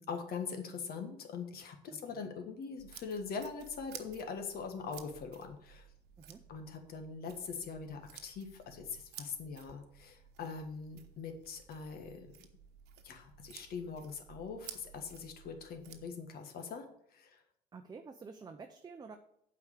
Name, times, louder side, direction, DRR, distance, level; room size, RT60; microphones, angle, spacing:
voice 1, 0.0-5.8 6.5-12.3 13.0-16.8 17.1-17.4, left 5 dB, 65° left, 5 dB, 1.6 m, -42 dB
voice 2, 1.9-2.3 6.2-6.4 17.7-19.2, right 4 dB, 25° right, 5 dB, 0.7 m, -50 dB
sound 1, 2.8-16.1, right 9 dB, 80° right, 1.0 m, -55 dB
8.1 x 4.9 x 6.6 m, 0.73 s
cardioid pair, 110°, 17 cm